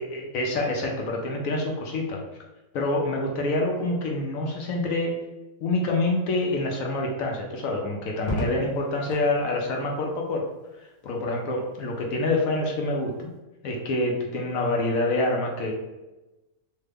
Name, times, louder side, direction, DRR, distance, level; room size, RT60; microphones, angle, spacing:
voice 1, 0.0-2.2 2.7-5.1 5.6-10.4 11.0-13.3 13.6-15.7, left 2 dB, 70° left, 0 dB, 0.9 m, -26 dB
Crackle, 8.2-9.3 10.9-11.5, right 1 dB, 25° left, 0.6 m, -34 dB
3.2 x 2.1 x 3.3 m, 1.0 s
omnidirectional pair, 1.7 m